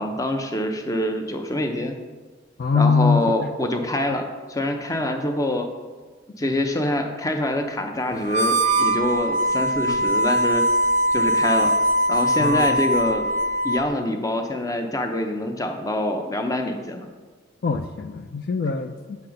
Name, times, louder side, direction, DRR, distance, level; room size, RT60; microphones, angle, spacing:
voice 1, 0.0-2.0 2.7-5.7 6.4-10.7 11.1-11.7 12.1-13.3 13.6-17.1, left 1 dB, 15° left, 5 dB, 0.6 m, -25 dB
voice 2, 2.6-3.3 9.9-10.0 12.4-12.7 17.6-19.2, left 4 dB, 50° left, 8 dB, 0.3 m, -22 dB
Harmonica, 8.2-13.9, right 1 dB, 35° right, 0.5 m, -21 dB
8.5 x 7.3 x 3.9 m, 1.4 s
head